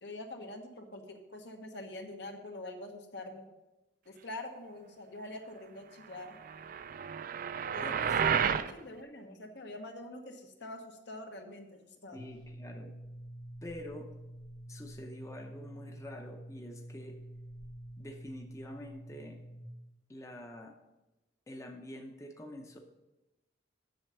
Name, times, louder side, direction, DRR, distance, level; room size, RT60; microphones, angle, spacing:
voice 1, 0.0-3.5 4.0-6.4 7.7-12.2, left 1 dB, 65° left, 4 dB, 1.1 m, -45 dB
sound 1, 6.4-8.7, right 7 dB, 50° right, 0.3 m, -31 dB
voice 2, 7.8-8.4 12.1-12.9 13.6-14.1 14.7-17.2 18.0-19.4 20.1-20.7 21.5-22.8, left 1 dB, 15° left, 3 dB, 0.7 m, -46 dB
sound 2, 12.2-19.7, right 1 dB, 70° right, 1.4 m, -48 dB
7.8 x 6.9 x 5.4 m, 1.0 s
head